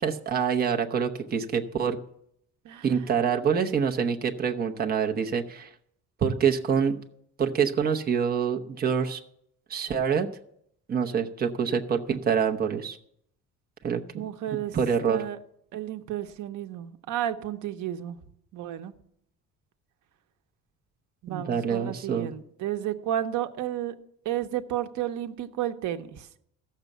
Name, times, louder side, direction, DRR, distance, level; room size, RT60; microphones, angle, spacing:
voice 1, 0.0-2.0 2.8-5.7 6.2-7.0 7.4-9.2 9.7-10.3 10.9-13.0 13.8-14.3 14.7-15.2 21.3-22.3, right 7 dB, 30° right, 3 dB, 0.9 m, -26 dB
voice 2, 14.1-14.8 15.1-15.4 15.7-18.2 18.5-18.9 21.2-23.9 24.2-26.3, right 11 dB, 70° right, 7 dB, 1.0 m, -32 dB
14.5 x 6.7 x 7.3 m, 0.71 s
cardioid pair, 175°, 31 cm